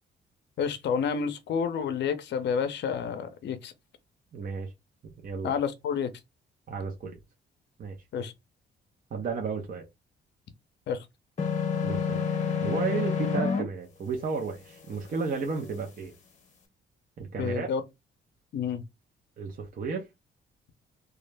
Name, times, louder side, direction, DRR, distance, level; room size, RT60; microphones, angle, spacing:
voice 1, 0.6-3.7 5.4-6.1 8.1-8.3 10.9-11.1 17.4-17.8 18.5-18.8, left 6 dB, 60° left, 0.6 m, -29 dB
voice 2, 4.3-4.7 5.2-5.6 6.7-7.1 7.8-8.0 9.1-9.8 11.8-12.2 12.6-16.1 17.2-17.7 19.4-20.1, right 5 dB, 45° right, 0.6 m, -33 dB
sound 1, 11.4-13.6, left 6 dB, 40° left, 0.9 m, -28 dB
2.3 x 2.0 x 3.2 m
cardioid pair, 90°, 20 cm